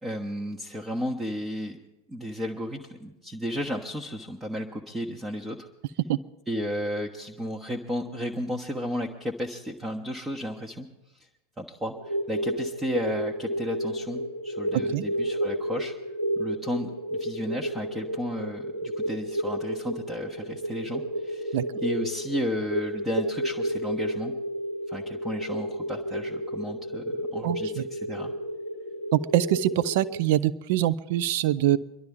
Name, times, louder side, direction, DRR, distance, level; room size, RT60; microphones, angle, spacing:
voice 1, 0.0-1.8 2.1-5.7 6.5-10.9 11.6-15.9 16.4-24.3 24.9-28.3, equal, 10° right, -1 dB, 1.1 m, -33 dB
sound 1, 11.9-30.2, equal, 75° right, 2.5 m, -32 dB
voice 2, 27.4-27.8 29.1-31.8, right 13 dB, 50° right, 16 dB, 0.6 m, -24 dB
25.0 x 12.0 x 3.6 m, 0.98 s
figure-of-eight pair, 90°, 0 cm